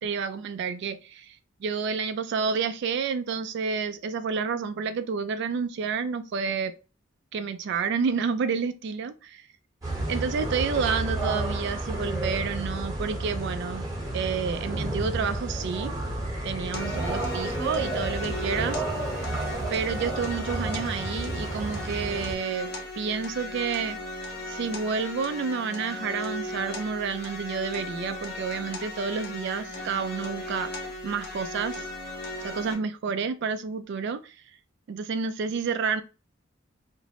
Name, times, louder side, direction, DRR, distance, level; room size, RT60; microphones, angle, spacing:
voice 1, 0.0-6.7 7.3-9.4 10.1-13.9 14.1-15.9 16.4-18.8 19.7-22.7 23.0-24.0 24.5-30.7 31.0-31.9 32.4-34.4 34.9-36.0, right 5 dB, 60° right, 0.3 m, -29 dB
sound 1, 9.8-22.3, right 1 dB, 15° right, 0.9 m, -31 dB
sound 2, 16.7-32.7, left 1 dB, 55° left, 0.7 m, -37 dB
2.5 x 2.0 x 2.8 m
head